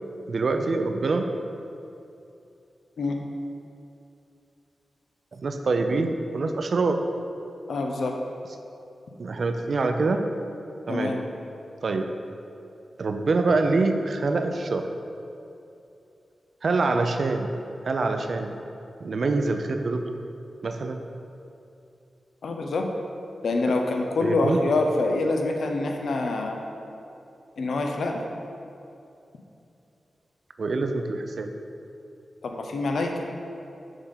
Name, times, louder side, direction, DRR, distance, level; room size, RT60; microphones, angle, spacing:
voice 1, 0.3-1.4 5.3-7.1 9.2-10.3 10.9-11.2 11.8-12.1 13.0-14.9 16.6-17.5 17.8-18.6 19.0-20.1 20.6-21.1 24.2-24.6 30.6-31.5, right 3 dB, 60° right, 6 dB, 0.5 m, -25 dB
voice 2, 7.7-8.1 10.9-11.2 22.4-22.8 23.4-26.6 27.6-28.2 32.4-33.1, left 2 dB, 80° left, 2 dB, 0.7 m, -25 dB
7.1 x 3.7 x 5.5 m, 2.7 s
cardioid pair, 75°, 0 cm